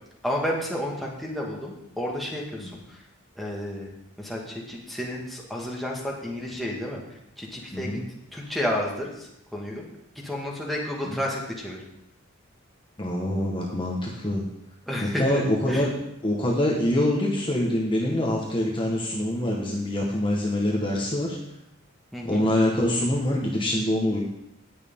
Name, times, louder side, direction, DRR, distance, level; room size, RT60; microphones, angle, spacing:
voice 1, 0.2-3.0 3.4-3.9 4.2-7.0 7.4-7.9 8.3-9.8 10.2-11.8 14.9-15.4 15.7-15.9 22.1-22.5, left 1 dB, ahead, -3 dB, 1.8 m, -31 dB
voice 2, 7.7-8.0 11.0-11.2 13.0-14.4 15.0-15.9 16.2-21.4 22.2-24.2, left 1 dB, 25° left, -2 dB, 1.4 m, -25 dB
17.5 x 6.6 x 3.7 m, 0.83 s
head